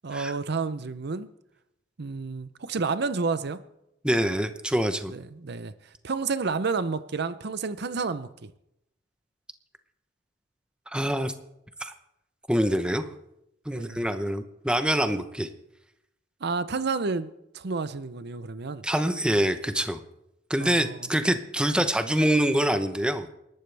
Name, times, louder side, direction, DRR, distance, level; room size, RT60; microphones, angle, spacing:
voice 1, 0.0-1.3 2.0-3.6 5.1-5.7 6.0-8.5 13.7-14.0 16.4-17.3 17.5-18.8 20.6-21.0, right 4 dB, 60° right, 0.7 m, -30 dB
voice 2, 4.0-5.1 10.9-11.3 11.8-11.9 12.5-13.0 13.7-15.5 18.8-20.0 20.5-23.3, equal, 5° right, 0.9 m, -25 dB
28.5 x 12.0 x 3.4 m
head